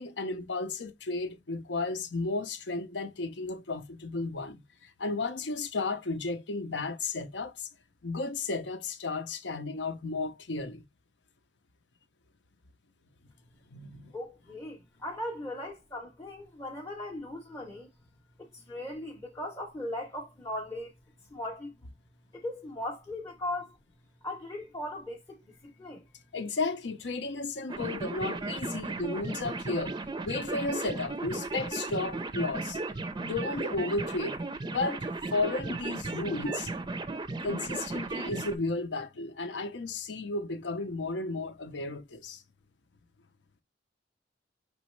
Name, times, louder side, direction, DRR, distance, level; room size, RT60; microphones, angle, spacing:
voice 1, 0.0-7.7 8.0-10.8 13.7-14.1 26.3-30.0 30.2-32.8 33.2-34.4 34.6-35.0 35.3-36.7 37.4-42.4, left 3 dB, 70° left, 0.7 m, -33 dB
voice 2, 14.1-17.9 18.4-20.9 21.3-21.7 22.3-23.8 24.2-26.0, left 1 dB, 20° left, 0.7 m, -38 dB
sound 1, 27.7-38.5, right 3 dB, 25° right, 0.5 m, -35 dB
5.3 x 3.1 x 3.1 m
head